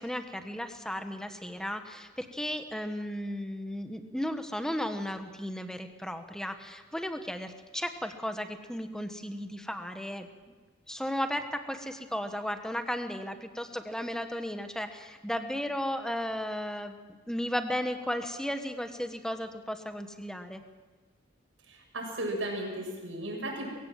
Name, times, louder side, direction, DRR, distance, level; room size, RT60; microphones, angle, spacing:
voice 1, 0.0-10.3 10.9-17.0 17.3-20.6, equal, 5° left, 7 dB, 1.4 m, -35 dB
voice 2, 21.7-23.7, right 1 dB, 90° right, 0 dB, 6.8 m, -35 dB
22.5 x 16.0 x 7.7 m, 1.3 s
head